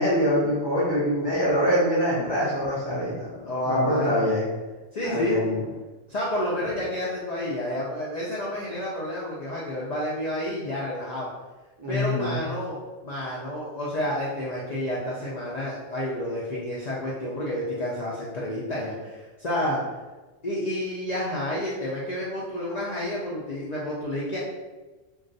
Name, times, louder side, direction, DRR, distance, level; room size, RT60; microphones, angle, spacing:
voice 1, 0.0-3.3 3.7-4.4 5.0-5.6 11.8-12.4, equal, 35° right, -8 dB, 0.4 m, -24 dB
voice 2, 3.4-4.2 4.9-5.3 6.1-11.3 11.9-12.8 13.0-19.8 20.4-24.4, left 1 dB, 75° left, -6 dB, 0.3 m, -30 dB
2.4 x 2.3 x 3.8 m, 1.2 s
omnidirectional pair, 1.4 m